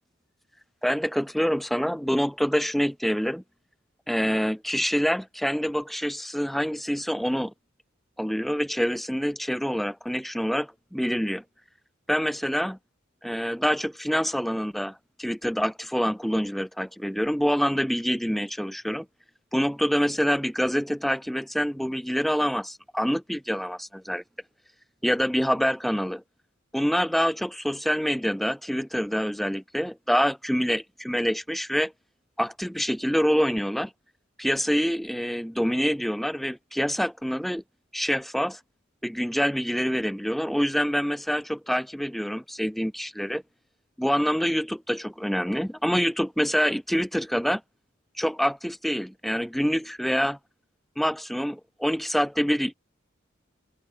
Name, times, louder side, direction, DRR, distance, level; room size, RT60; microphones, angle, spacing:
voice 1, 0.8-3.4 4.1-7.5 8.2-11.4 12.1-12.8 13.2-19.1 19.5-24.2 25.0-26.2 26.7-31.9 32.4-33.9 34.4-37.6 37.9-38.6 39.0-43.4 44.0-47.6 48.2-50.4 51.0-52.7, equal, ahead, 0.4 m, -26 dB
head